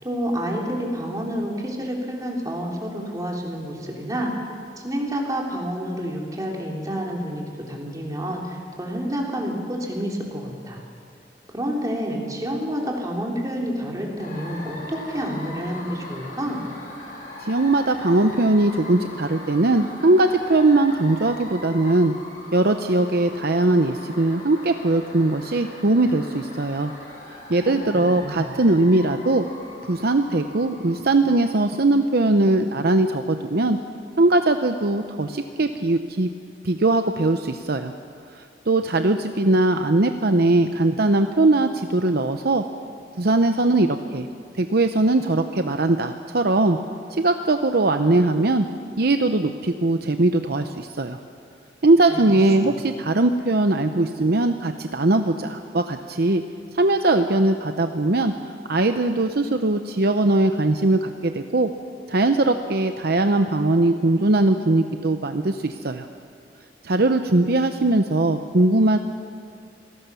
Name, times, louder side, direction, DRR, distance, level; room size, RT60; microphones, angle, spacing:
voice 1, 0.0-4.3 4.8-10.8 11.5-16.6 27.6-28.5 52.1-52.2 52.6-52.7, equal, 20° right, -1 dB, 3.7 m, -29 dB
sound 1, 14.2-32.2, left 1 dB, 45° left, 6.9 m, -40 dB
voice 2, 17.4-22.1 22.5-26.9 27.5-29.5 29.9-33.8 34.2-36.3 36.6-37.9 38.4-42.6 43.2-44.3 44.6-46.8 47.1-48.7 49.0-51.2 51.8-56.4 56.7-58.3 58.7-61.7 62.1-66.1 66.8-69.0, right 2 dB, 60° right, 7 dB, 0.8 m, -20 dB
27.0 x 18.0 x 7.0 m, 2.2 s
head